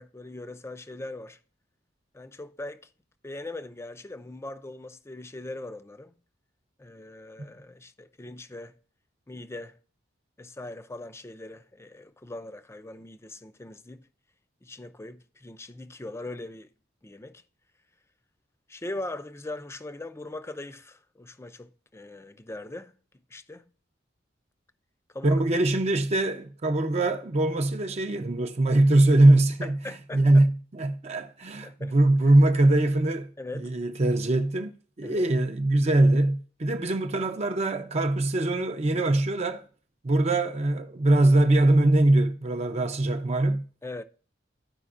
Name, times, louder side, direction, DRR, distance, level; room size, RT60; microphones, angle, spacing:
voice 1, 0.0-1.4 2.1-2.9 3.2-6.1 6.8-8.8 9.3-9.8 10.4-14.1 14.6-16.7 17.0-17.4 18.7-22.9 23.3-23.6 25.1-25.4 29.6-30.4 31.1-31.2 31.6-31.9 33.4-33.7 35.0-35.3 43.8-44.0, left 2 dB, 15° left, 0.4 m, -40 dB
voice 2, 25.2-29.8 30.1-33.3 33.6-34.7 35.0-39.6 40.0-43.6, right 2 dB, 35° right, 0.5 m, -22 dB
13.5 x 5.1 x 2.4 m
head